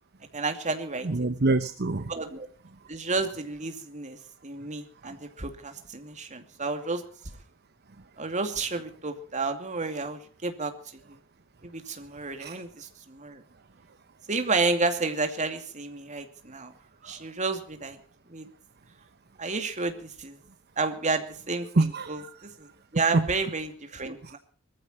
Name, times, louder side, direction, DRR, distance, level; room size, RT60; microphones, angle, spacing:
voice 1, 0.3-1.1 2.1-2.5 2.9-7.0 8.2-11.2 11.6-13.4 14.3-16.7 17.0-18.0 18.3-18.5 19.4-20.4 20.8-24.4, right 3 dB, 35° right, 6 dB, 2.6 m, -31 dB
voice 2, 1.0-2.1 12.4-12.6 17.1-17.2 21.8-22.3 24.2-24.4, right 2 dB, 55° right, 11 dB, 0.9 m, -26 dB
21.0 x 14.5 x 4.4 m, 0.43 s
head